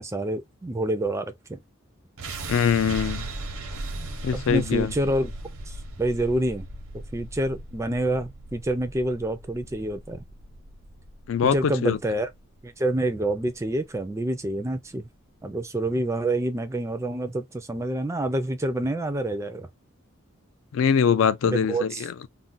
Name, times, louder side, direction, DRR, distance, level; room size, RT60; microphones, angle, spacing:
voice 1, 0.0-1.6 4.3-5.3 5.7-6.7 6.9-10.2 11.4-12.3 12.6-15.1 15.4-19.7 21.4-22.1, right 1 dB, 15° right, 0.4 m, -27 dB
sound 1, 2.2-14.2, right 2 dB, 90° right, 0.8 m, -38 dB
voice 2, 2.5-3.3 4.2-4.9 11.3-12.0 20.7-22.3, left 7 dB, 65° left, 0.3 m, -23 dB
2.4 x 2.1 x 3.8 m
head